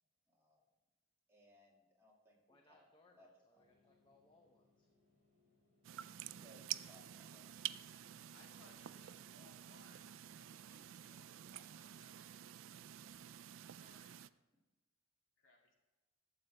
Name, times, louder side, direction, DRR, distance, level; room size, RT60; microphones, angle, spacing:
voice 1, 0.3-0.6 1.3-3.3 6.2-7.5 13.6-13.7, equal, 10° right, -3 dB, 1.9 m, -66 dB
voice 2, 2.5-4.9, left 2 dB, 20° left, 2 dB, 0.7 m, -70 dB
sound 1, 3.5-10.5, left 3 dB, 40° left, 3.2 m, -76 dB
sound 2, 5.8-14.3, right 12 dB, 65° right, 0.3 m, -49 dB
voice 3, 8.3-10.0 10.3-13.1 13.7-14.1 15.4-15.7, left 2 dB, 65° left, -1 dB, 2.2 m, -68 dB
12.0 x 8.0 x 3.3 m, 1.2 s
head